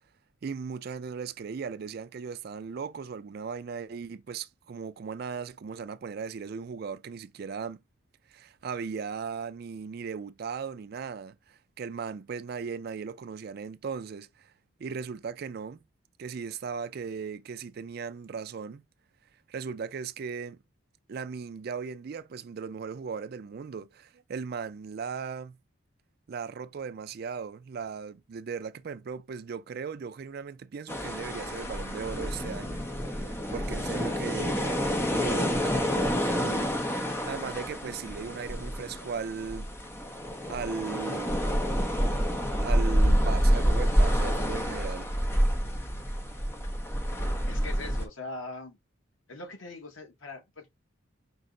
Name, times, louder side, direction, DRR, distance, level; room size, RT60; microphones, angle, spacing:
voice 1, 0.4-7.8 8.3-14.5 14.8-15.8 16.2-18.8 19.5-20.6 21.1-25.6 26.3-39.7 40.5-41.5 42.6-45.1, right 5 dB, 50° right, 0.3 m, -37 dB
sound 1, 30.9-48.1, equal, 10° left, 0.6 m, -28 dB
voice 2, 47.4-48.8 49.3-50.7, left 2 dB, 85° left, 1.0 m, -41 dB
5.3 x 2.0 x 3.7 m
head